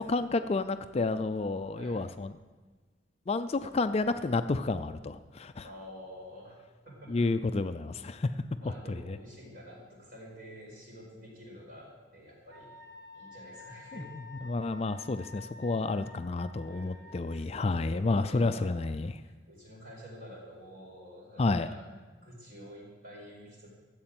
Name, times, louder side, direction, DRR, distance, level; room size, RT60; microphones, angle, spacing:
voice 1, 0.0-2.3 3.3-5.7 7.1-8.3 8.9-9.2 13.9-14.0 14.4-19.1 21.4-21.7, left 3 dB, 35° left, 10 dB, 0.4 m, -30 dB
voice 2, 1.7-2.1 5.6-6.6 6.8-7.2 8.6-12.7 13.1-14.1 16.6-18.9 19.2-23.7, equal, 50° right, -3 dB, 4.7 m, -49 dB
Wind instrument woodwind instrument, 12.5-17.4, left 3 dB, 65° right, 1.2 m, -50 dB
13.0 x 7.9 x 7.6 m, 1.4 s
head